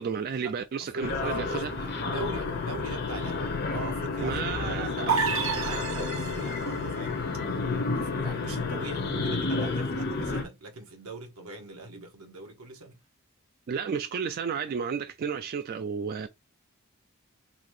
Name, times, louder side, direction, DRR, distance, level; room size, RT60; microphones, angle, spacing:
voice 1, 0.0-1.7 4.2-5.1 13.7-16.3, right 6 dB, 45° right, 0.3 m, -32 dB
voice 2, 0.9-7.2 7.9-12.9, right 2 dB, 80° right, 1.2 m, -41 dB
sound 1, 1.0-10.4, left 3 dB, 50° left, 0.7 m, -31 dB
sound 2, 2.1-9.4, left 8 dB, 90° left, 0.3 m, -37 dB
sound 3, 5.1-6.7, right 6 dB, 65° right, 1.1 m, -29 dB
4.0 x 2.7 x 3.1 m
head